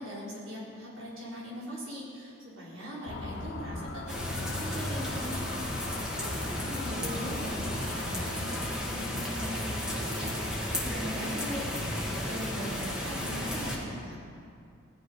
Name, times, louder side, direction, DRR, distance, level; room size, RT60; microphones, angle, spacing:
voice 1, 0.0-5.7 6.2-8.6 8.9-14.2, equal, 75° right, -6 dB, 4.5 m, -40 dB
Motor vehicle (road) / Siren, 3.1-8.7, left 2 dB, 55° left, 0.8 m, -39 dB
sound 1, 4.1-13.8, left 1 dB, 5° right, 1.7 m, -34 dB
17.0 x 11.5 x 5.4 m, 2.4 s
head